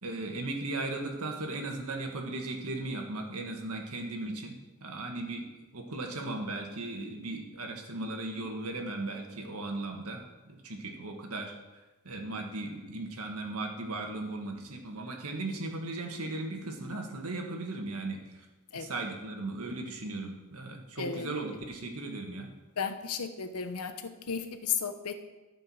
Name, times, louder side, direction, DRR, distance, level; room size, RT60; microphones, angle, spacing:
voice 1, 0.0-4.6 4.8-5.5 5.7-10.2 10.5-11.5 12.0-18.5 18.7-22.5, right 2 dB, 80° right, 2 dB, 1.8 m, -37 dB
voice 2, 21.0-21.3 22.8-25.1, left 6 dB, 80° left, 9 dB, 0.9 m, -34 dB
13.5 x 5.2 x 6.3 m, 1.1 s
head